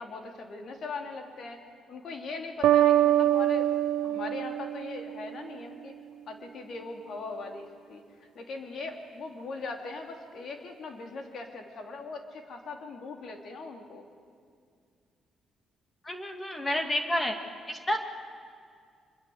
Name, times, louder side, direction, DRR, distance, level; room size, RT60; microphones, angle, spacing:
voice 1, 0.0-1.6 1.9-3.7 4.0-6.0 6.3-8.0 8.3-14.1, left 3 dB, 60° left, 4 dB, 3.2 m, -40 dB
sound 1, 2.6-5.5, right 13 dB, 85° right, 0.5 m, -24 dB
voice 2, 16.0-17.4 17.7-18.0, left 1 dB, 20° left, 5 dB, 2.2 m, -29 dB
24.0 x 22.5 x 8.0 m, 2.2 s
cardioid pair, 90°, 0 cm